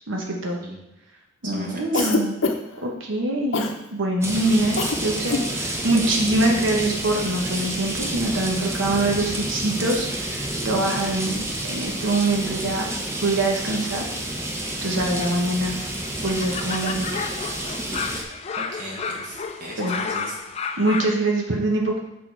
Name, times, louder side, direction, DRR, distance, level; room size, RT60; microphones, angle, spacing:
voice 1, 0.1-0.6 1.4-2.4 2.8-11.4 11.7-12.9 13.2-14.0 14.8-15.8 16.2-17.4 19.8-20.0 20.8-22.0, right 2 dB, 80° right, 0 dB, 1.0 m, -24 dB
voice 2, 1.4-2.1 18.5-20.4, right 1 dB, 45° right, -2 dB, 1.2 m, -36 dB
Cough, 1.9-2.8 3.5-3.8 4.8-5.0 5.2-5.5, left 3 dB, 75° left, 0.6 m, -24 dB
sound 1, 4.2-18.2, right 1 dB, 15° right, 0.7 m, -29 dB
sound 2, 14.9-21.2, left 5 dB, 30° left, 0.3 m, -32 dB
6.3 x 3.8 x 4.5 m, 1.0 s
head